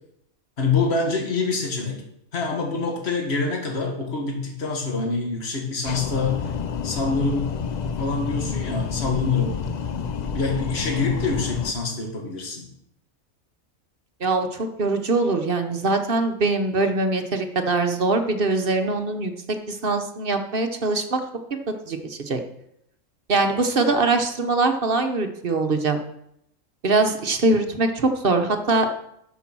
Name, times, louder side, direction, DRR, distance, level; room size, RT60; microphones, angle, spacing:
voice 1, 0.6-2.0 2.3-6.5 6.8-7.5 8.0-9.6 10.3-12.7, left 4 dB, 50° left, 0 dB, 2.0 m, -25 dB
sound 1, 5.8-11.7, left 6 dB, 75° left, 0.4 m, -29 dB
voice 2, 14.2-19.3 19.7-21.2 21.9-22.4 23.3-26.0 26.8-28.9, right 3 dB, 45° right, 6 dB, 1.0 m, -22 dB
10.0 x 6.2 x 6.0 m, 0.76 s
omnidirectional pair, 1.4 m